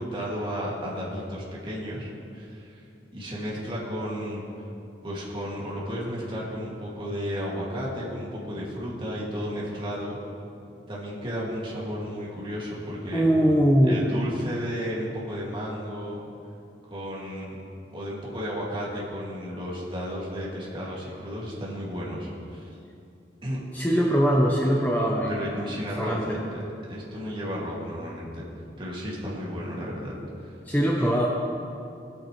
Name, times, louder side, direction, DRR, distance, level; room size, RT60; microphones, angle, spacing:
voice 1, 0.0-2.8 3.1-4.4 5.0-10.2 10.9-13.2 13.9-16.2 16.9-17.6 17.9-22.7 23.4-23.6 25.3-26.6 26.9-28.4 28.8-30.1 30.4-30.5 31.0-31.1, equal, 30° right, -6 dB, 2.4 m, -33 dB
voice 2, 13.1-14.1 23.7-26.4 30.7-31.3, equal, 10° left, -2 dB, 0.8 m, -22 dB
18.0 x 8.4 x 3.3 m, 2.6 s
head